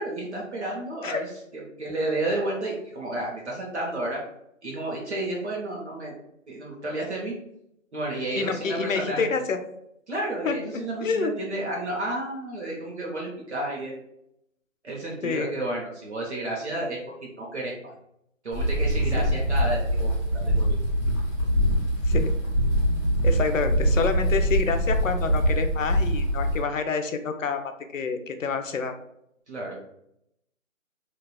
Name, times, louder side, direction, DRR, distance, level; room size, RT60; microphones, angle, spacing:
voice 1, 0.0-4.2 4.6-6.2 6.5-7.3 7.9-9.3 10.1-14.0 14.8-17.9 18.4-20.1 20.5-20.8 29.5-29.7, right 1 dB, 60° right, -3 dB, 0.7 m, -31 dB
voice 2, 8.3-9.6 10.4-10.6 11.0-11.3 15.2-15.5 19.2-19.3 22.1-22.3 23.2-27.6 27.9-28.9, left 5 dB, 75° left, 7 dB, 0.5 m, -28 dB
sound 1, 18.5-26.6, equal, 20° right, 0.9 m, -23 dB
3.1 x 2.2 x 2.3 m, 0.78 s
figure-of-eight pair, 175°, 40 cm